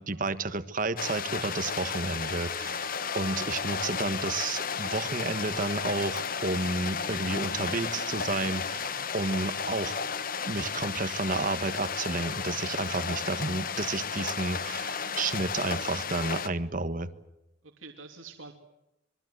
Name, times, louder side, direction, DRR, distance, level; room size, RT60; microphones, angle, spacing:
voice 1, 0.0-10.0 10.5-17.1, right 3 dB, 40° right, 12 dB, 1.4 m, -31 dB
sound 1, 1.0-16.5, left 6 dB, 45° left, 1.0 m, -33 dB
voice 2, 3.4-4.0 12.6-13.3 13.6-13.7 17.6-18.5, right 3 dB, 80° right, 3 dB, 2.8 m, -50 dB
26.5 x 22.0 x 8.0 m, 0.89 s
head